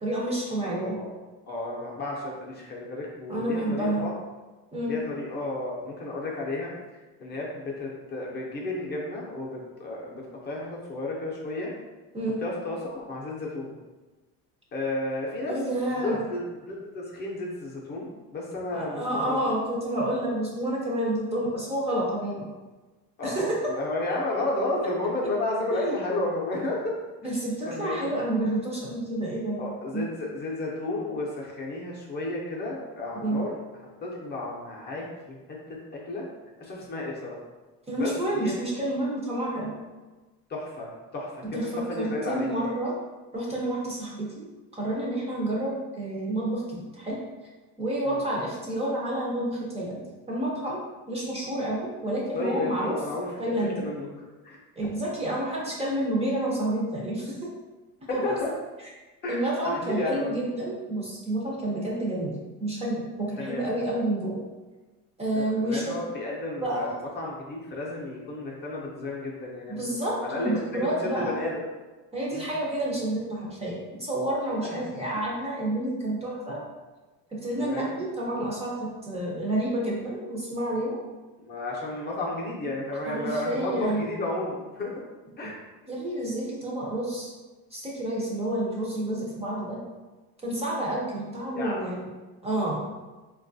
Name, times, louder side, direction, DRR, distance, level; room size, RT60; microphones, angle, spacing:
voice 1, 0.0-1.0 3.3-4.1 4.7-5.0 12.1-12.4 15.5-16.2 18.7-22.5 23.2-23.7 25.7-25.9 27.2-29.6 29.9-30.1 33.2-33.5 37.9-39.7 41.5-42.9 43.3-44.5 44.7-47.2 47.8-50.8 51.1-53.0 53.4-53.9 54.8-57.4 58.1-58.3 59.3-62.3 62.6-64.4 65.2-65.9 66.6-66.9 69.7-71.4 72.1-76.6 77.3-78.7 79.0-81.0 82.9-84.1 85.9-87.3 87.7-89.8 90.4-92.1 92.4-92.8, right 1 dB, 20° right, -4 dB, 0.5 m, -29 dB
voice 2, 0.8-1.1 1.5-4.1 4.9-6.7 7.2-11.7 12.4-13.7 14.7-15.6 15.9-18.1 18.3-19.4 23.2-27.0 27.6-28.1 29.6-33.5 34.0-36.3 36.6-37.4 37.9-38.5 40.5-42.5 48.0-48.2 52.3-54.1 54.4-54.6 58.1-58.5 59.2-60.4 63.4-63.7 65.3-71.6 72.3-72.4 74.6-74.8 77.6-77.9 81.4-84.9 85.4-85.6 91.6-91.9, left 2 dB, 30° left, -3 dB, 0.5 m, -32 dB
3.9 x 2.3 x 2.6 m, 1.2 s
cardioid pair, 150°, 35 cm